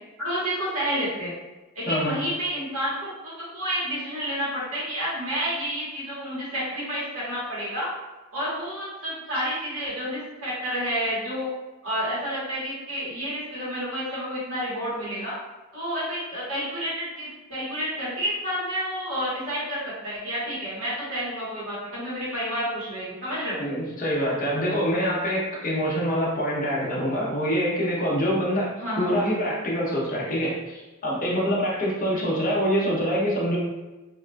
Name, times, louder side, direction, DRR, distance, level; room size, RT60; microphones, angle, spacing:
voice 1, 0.2-1.3 1.7-2.9 3.2-7.9 8.3-11.5 11.8-15.4 15.7-23.6 28.8-29.1 32.1-32.3, equal, 80° right, -8 dB, 1.2 m, -30 dB
voice 2, 1.9-2.2 23.6-33.6, equal, 40° left, -4 dB, 0.7 m, -25 dB
2.9 x 2.4 x 2.2 m, 1.1 s
head